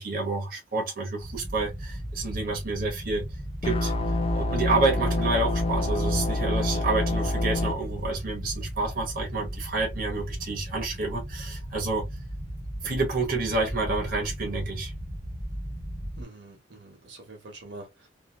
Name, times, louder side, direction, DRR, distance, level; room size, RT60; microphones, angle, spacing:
voice 1, 0.0-3.3 3.6-3.9 4.3-12.1 12.8-14.9, right 3 dB, 50° right, 1.0 m, -29 dB
sound 1, 1.2-16.2, equal, ahead, 1.1 m, -36 dB
sound 2, 3.6-7.7, left 2 dB, 30° left, 0.5 m, -26 dB
voice 2, 16.2-18.1, right 2 dB, 75° right, 1.1 m, -45 dB
2.8 x 2.5 x 2.4 m
head